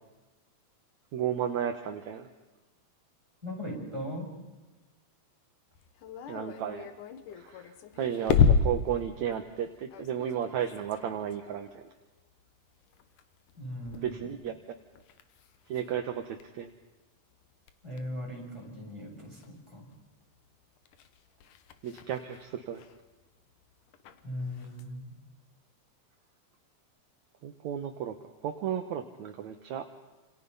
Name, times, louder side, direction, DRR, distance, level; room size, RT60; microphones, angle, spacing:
voice 1, 1.1-2.3 6.3-6.9 7.4-11.9 14.0-14.5 15.7-16.7 21.8-22.8 27.4-29.9, right 9 dB, 65° right, 6 dB, 2.3 m, -34 dB
voice 2, 3.4-4.4 13.6-14.3 17.8-20.0 24.2-25.2, equal, 10° right, -3 dB, 7.0 m, -39 dB
sound 1, 5.7-16.8 17.3-20.0 20.3-25.0, left 6 dB, 75° left, 2.7 m, -33 dB
28.5 x 27.5 x 5.5 m, 1.2 s
omnidirectional pair, 3.7 m